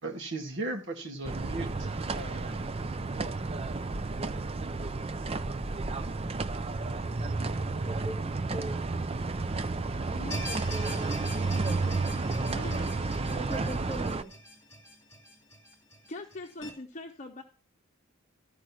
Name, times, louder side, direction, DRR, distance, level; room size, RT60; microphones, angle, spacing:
voice 1, 0.0-1.9 2.1-2.7, right 2 dB, 60° right, 2.1 m, -37 dB
sound 1, 1.2-14.2, right 3 dB, 25° right, 0.5 m, -32 dB
voice 2, 7.5-8.8 10.1-11.2 13.3-14.3, right 1 dB, 10° right, 1.7 m, -41 dB
voice 3, 10.0-10.4 12.5-13.0 16.0-17.4, left 2 dB, 35° left, 0.9 m, -42 dB
sound 2, 10.3-16.7, equal, 15° left, 2.7 m, -43 dB
13.0 x 5.2 x 6.1 m
head